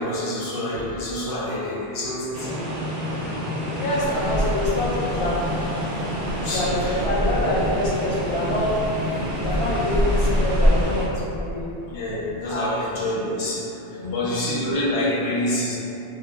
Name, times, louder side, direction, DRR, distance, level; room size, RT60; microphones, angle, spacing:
voice 1, 0.0-2.7 6.4-7.0 11.9-13.6 14.1-15.8, left 1 dB, 85° left, -6 dB, 0.9 m, -27 dB
sound 1, 2.3-11.1, equal, 60° right, 0.6 m, -29 dB
voice 2, 3.8-5.5 6.4-8.7 9.4-11.7 12.5-12.7 13.9-14.3, left 1 dB, 40° left, -8 dB, 0.5 m, -26 dB
sound 2, 4.0-10.9, equal, 5° right, 0.6 m, -26 dB
2.2 x 2.1 x 3.3 m, 2.9 s
omnidirectional pair, 1.1 m